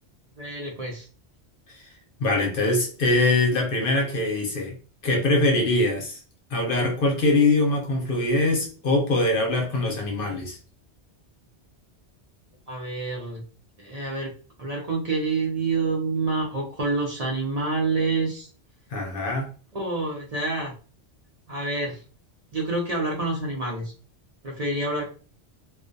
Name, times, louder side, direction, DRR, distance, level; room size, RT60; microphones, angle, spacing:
voice 1, 0.4-1.1 12.7-13.4 13.8-14.3 14.6-18.5 19.7-20.7 21.5-22.0 22.5-23.9 24.4-25.1, right 3 dB, 45° right, 0.6 m, -27 dB
voice 2, 2.2-4.8 5.0-6.2 6.5-10.6 18.9-19.5, left 2 dB, 60° left, 0.7 m, -23 dB
2.2 x 2.2 x 2.5 m
omnidirectional pair, 1.1 m